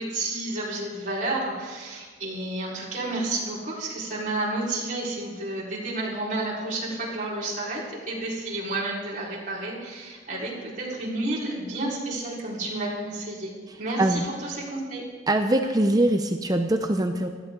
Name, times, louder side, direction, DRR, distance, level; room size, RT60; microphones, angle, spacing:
voice 1, 0.0-13.5 13.8-15.0, right 2 dB, 45° right, -6 dB, 4.6 m, -31 dB
voice 2, 15.3-17.3, right 1 dB, 20° right, 5 dB, 0.7 m, -22 dB
18.5 x 14.0 x 3.9 m, 1.5 s
head